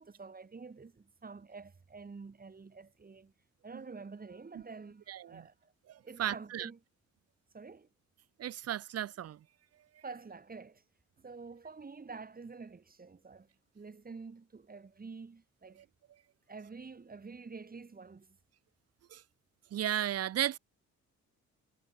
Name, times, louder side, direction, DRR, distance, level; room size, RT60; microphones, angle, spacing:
voice 1, 0.0-3.3 3.6-5.7 6.0-6.8 7.5-7.9 10.0-10.8 11.2-13.5 13.7-15.9 16.5-18.4, right 4 dB, 30° right, 5.4 m, -48 dB
voice 2, 5.1-5.4 5.9-6.7 8.4-9.4 19.1-19.2 19.7-20.6, right 11 dB, 55° right, 0.8 m, -34 dB
cardioid pair, 90°, 30 cm